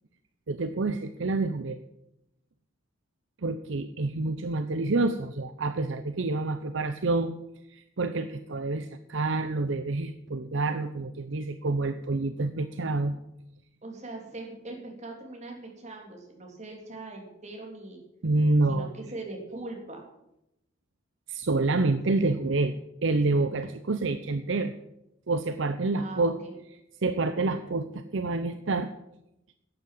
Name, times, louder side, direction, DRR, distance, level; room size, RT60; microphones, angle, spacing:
voice 1, 0.5-1.8 3.4-7.3 7.7-13.1 18.2-18.9 21.3-22.7 23.0-24.7 25.3-26.4 27.0-28.9, right 3 dB, 65° right, 10 dB, 0.7 m, -27 dB
voice 2, 13.8-18.0 18.7-20.0 25.9-26.5, right 2 dB, 35° right, 0 dB, 3.3 m, -41 dB
12.0 x 8.5 x 7.7 m, 0.85 s
head